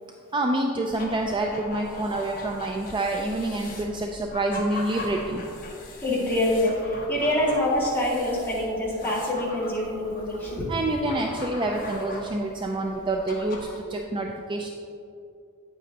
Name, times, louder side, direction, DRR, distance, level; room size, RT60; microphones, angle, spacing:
voice 1, 0.3-5.4 10.4-14.7, right 2 dB, 20° right, 2 dB, 0.4 m, -27 dB
sound 1, 0.9-13.8, left 2 dB, 40° left, 1.1 m, -41 dB
voice 2, 6.0-10.7 11.1-11.2, left 1 dB, 10° left, -7 dB, 2.1 m, -25 dB
9.4 x 8.2 x 2.9 m, 2.5 s
head